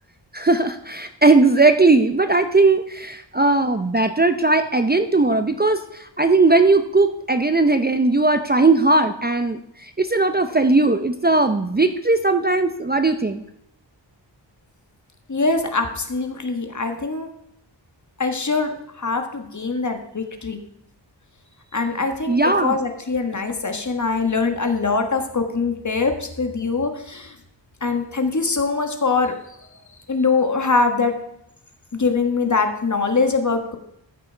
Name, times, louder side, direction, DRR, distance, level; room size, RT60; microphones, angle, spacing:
voice 1, 0.3-13.4 22.3-22.8, right 3 dB, 20° right, 8 dB, 0.6 m, -18 dB
voice 2, 15.3-17.3 18.2-20.6 21.7-27.3 27.8-29.3 30.1-31.1 31.9-33.8, left 4 dB, 40° left, 6 dB, 1.4 m, -23 dB
14.0 x 6.1 x 4.5 m, 0.78 s
wide cardioid pair, 85°, 44 cm